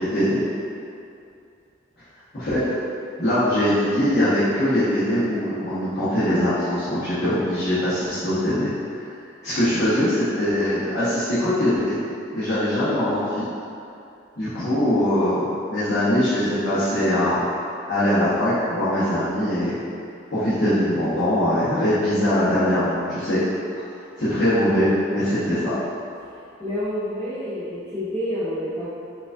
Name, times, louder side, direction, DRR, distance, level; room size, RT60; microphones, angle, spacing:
voice 1, 3.2-9.0 9.4-12.0 12.3-13.4 14.4-17.4 17.9-19.7 20.3-23.4 24.2-25.8, left 1 dB, 60° left, -14 dB, 1.0 m, -22 dB
voice 2, 26.6-28.9, equal, 15° left, -11 dB, 0.6 m, -28 dB
4.6 x 2.4 x 2.6 m, 2.5 s
head